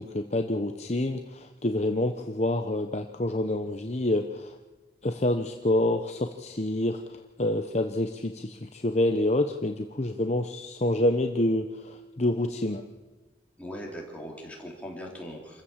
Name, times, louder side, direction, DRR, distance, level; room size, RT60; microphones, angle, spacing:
voice 1, 0.0-4.5 5.0-12.8, left 1 dB, 35° left, 5 dB, 0.9 m, -27 dB
voice 2, 13.6-15.6, equal, 5° left, -2 dB, 4.1 m, -40 dB
27.0 x 15.0 x 7.4 m, 1.2 s
head